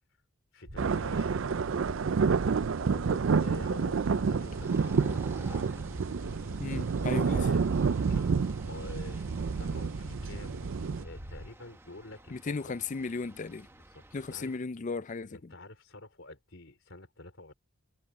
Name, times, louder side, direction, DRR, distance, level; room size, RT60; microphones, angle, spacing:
voice 1, 0.5-1.5 2.9-5.8 7.2-7.6 8.1-10.6 11.0-12.8 13.7-14.5 15.3-17.5, left 2 dB, 65° left, 4.0 m, -48 dB
sound 1, 0.6-11.5, equal, 85° right, 4.5 m, -43 dB
sound 2, 0.8-11.0, right 5 dB, 65° right, 0.4 m, -29 dB
sound 3, 2.5-14.6, right 1 dB, 10° right, 1.0 m, -51 dB
voice 2, 6.6-7.4 12.3-13.7 14.1-15.4, left 4 dB, 35° left, 0.4 m, -35 dB
head